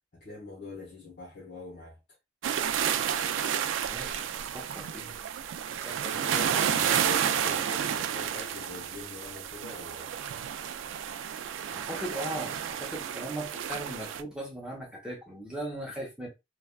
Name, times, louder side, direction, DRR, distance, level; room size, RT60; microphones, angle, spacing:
voice 1, 0.1-2.0 6.1-10.1, left 3 dB, 60° left, 1.1 m, -44 dB
sound 1, 2.4-14.2, right 9 dB, 85° right, 0.3 m, -31 dB
voice 2, 3.9-5.1 5.8-6.4 11.7-16.3, right 1 dB, 5° right, 0.8 m, -39 dB
3.2 x 2.3 x 2.3 m
head